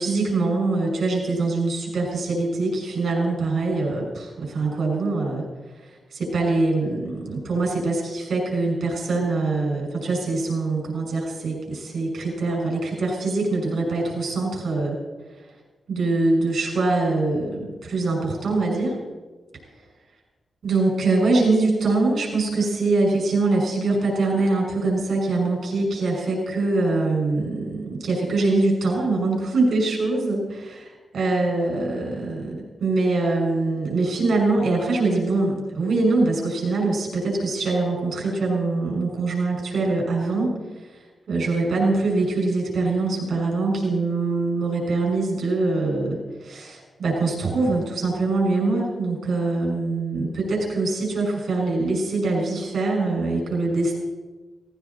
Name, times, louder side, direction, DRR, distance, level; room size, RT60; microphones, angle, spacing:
voice 1, 0.0-5.4 5.8-15.0 15.9-19.0 20.6-40.6 40.9-41.0 41.3-54.0, right 3 dB, 65° right, -1 dB, 6.1 m, -23 dB
18.0 x 17.0 x 4.3 m, 1.2 s
wide cardioid pair, 135°, 0 cm